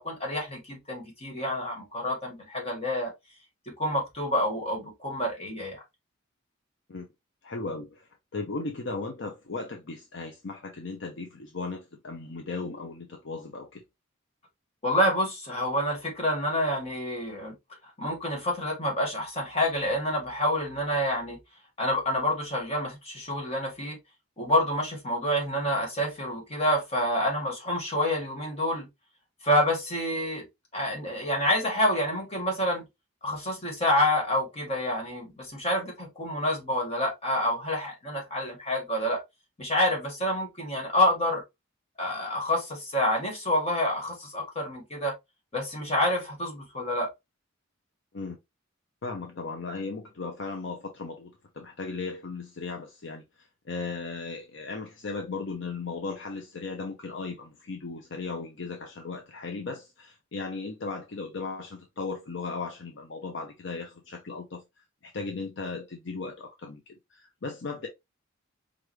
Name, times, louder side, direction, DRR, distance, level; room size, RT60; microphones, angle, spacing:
voice 1, 0.0-3.1 3.8-5.8 14.8-17.5 18.0-21.4 21.8-24.0 24.4-28.9 29.4-30.4 30.7-32.8 33.2-39.2 39.6-41.4 42.0-45.1 45.5-47.1, left 1 dB, 30° left, 1.8 m, -28 dB
voice 2, 7.4-13.8 48.1-48.4 49.0-64.6 65.0-67.9, left 3 dB, 60° left, 0.7 m, -36 dB
4.8 x 2.5 x 3.0 m
head